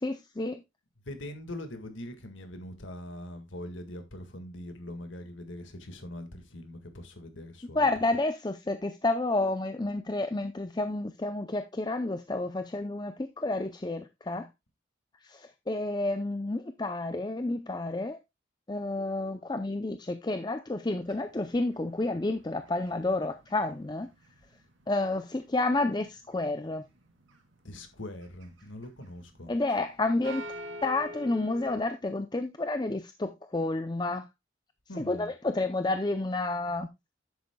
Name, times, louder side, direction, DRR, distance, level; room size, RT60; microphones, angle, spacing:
voice 1, 0.0-0.6 7.7-14.5 15.2-18.2 18.7-24.1 24.9-26.8 29.5-30.4 30.8-34.3 35.0-36.9, left 2 dB, 20° left, 0.5 m, -30 dB
voice 2, 1.1-7.9 27.6-29.5 34.9-35.3, left 1 dB, 75° left, 1.8 m, -42 dB
sound 1, 21.0-25.2 25.5-26.3 26.8-27.4 27.7-29.9 30.2-31.8, equal, 85° right, 2.6 m, -45 dB
10.5 x 8.2 x 2.3 m
head